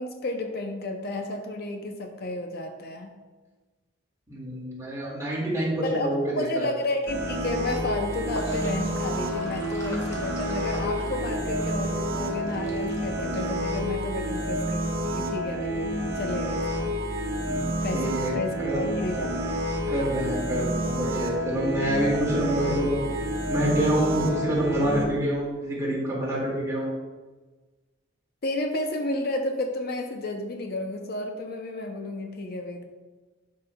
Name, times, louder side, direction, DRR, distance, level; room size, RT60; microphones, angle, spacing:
voice 1, 0.0-3.2 5.8-16.9 17.8-19.3 28.4-32.8, left 2 dB, 50° left, 4 dB, 0.5 m, -32 dB
voice 2, 4.3-6.7 17.4-17.7 17.9-18.3 18.6-18.8 19.2-19.3 19.9-23.0 23.5-26.9, right 1 dB, 15° right, -6 dB, 2.0 m, -27 dB
sound 1, 7.1-25.0, equal, 65° right, 1.2 m, -29 dB
Sink (filling or washing), 8.1-14.4, equal, 15° left, 1.3 m, -42 dB
10.5 x 5.3 x 2.2 m, 1.3 s
head